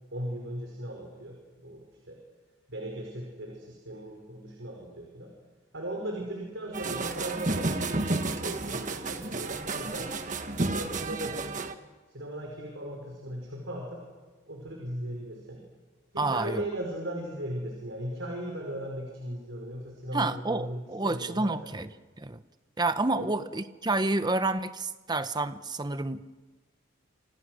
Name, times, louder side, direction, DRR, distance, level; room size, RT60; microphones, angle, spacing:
voice 1, 0.1-2.2 2.7-5.3 5.7-10.1 10.6-11.5 12.1-14.0 14.5-15.6 16.1-21.5 23.1-23.3, right 1 dB, 65° right, 0 dB, 5.2 m, -37 dB
sound 1, 6.7-11.7, right 2 dB, 40° right, 1.6 m, -31 dB
voice 2, 16.2-16.6 20.1-21.9 22.2-22.4 22.8-26.3, right 2 dB, 20° right, 11 dB, 0.8 m, -29 dB
29.0 x 27.0 x 6.4 m, 1.3 s
head